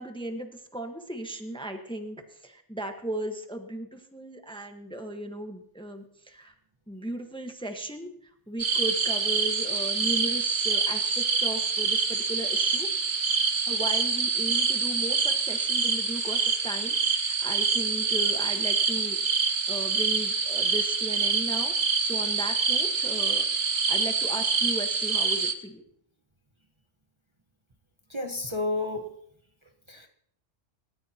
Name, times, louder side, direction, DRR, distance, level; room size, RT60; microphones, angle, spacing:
voice 1, 0.0-6.5 6.9-8.1 8.5-12.9 13.7-19.2 19.7-21.7 22.0-23.4 23.9-25.8, right 1 dB, 5° left, 4 dB, 1.3 m, -36 dB
sound 1, 8.6-25.5, right 5 dB, 60° right, 1.4 m, -26 dB
voice 2, 28.1-29.1 29.9-30.1, left 2 dB, 25° right, 3 dB, 1.2 m, -31 dB
27.5 x 14.0 x 2.9 m, 0.68 s
omnidirectional pair, 1.2 m